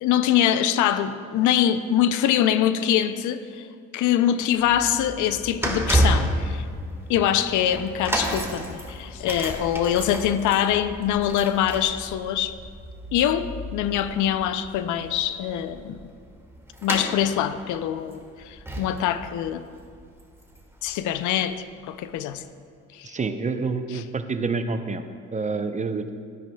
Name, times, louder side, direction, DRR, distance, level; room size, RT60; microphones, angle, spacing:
voice 1, 0.0-3.7 3.9-6.6 7.1-12.5 13.1-16.0 16.8-19.6 20.8-22.4 22.9-23.1, left 10 dB, 70° left, 12 dB, 0.5 m, -24 dB
sound 1, 4.5-20.9 21.1-21.4 22.2-22.3, right 1 dB, 10° right, 1.6 m, -31 dB
voice 2, 23.0-25.0 25.3-26.1, right 4 dB, 25° right, 9 dB, 0.6 m, -27 dB
12.0 x 9.8 x 2.3 m, 2.2 s
supercardioid pair, 60°, 32 cm